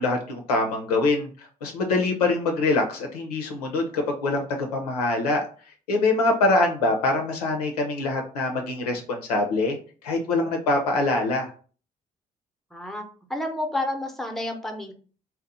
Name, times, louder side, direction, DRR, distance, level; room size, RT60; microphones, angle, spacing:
voice 1, 0.0-5.4 5.9-9.8 10.0-11.5, left 2 dB, 80° left, 2 dB, 0.5 m, -24 dB
voice 2, 12.7-13.0 13.3-14.9, left 1 dB, ahead, 4 dB, 0.7 m, -30 dB
2.7 x 2.0 x 3.9 m, 0.40 s
figure-of-eight pair, 45°, 19 cm